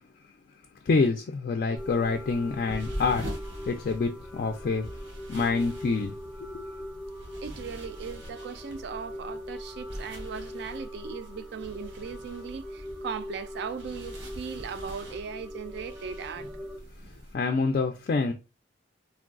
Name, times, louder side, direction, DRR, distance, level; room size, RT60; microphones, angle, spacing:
voice 1, 0.9-3.3 3.6-4.9 5.3-6.1 6.4-6.6 17.3-18.3, left 4 dB, 50° left, 0.3 m, -26 dB
sound 1, 1.7-16.8, equal, 10° right, 0.5 m, -42 dB
sound 2, 1.8-17.3, equal, 80° right, 0.9 m, -43 dB
voice 2, 7.4-16.5, right 6 dB, 60° right, 0.3 m, -38 dB
3.3 x 2.2 x 2.4 m
head